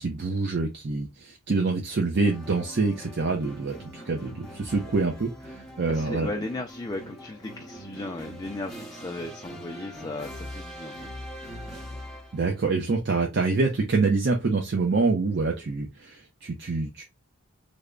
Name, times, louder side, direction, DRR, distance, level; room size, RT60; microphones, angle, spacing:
voice 1, 0.0-6.3 12.3-17.0, right 3 dB, 50° right, 0.5 m, -26 dB
sound 1, 2.1-12.6, equal, ahead, 0.8 m, -42 dB
voice 2, 5.9-11.1, left 2 dB, 20° left, 0.3 m, -36 dB
3.3 x 2.1 x 3.6 m
head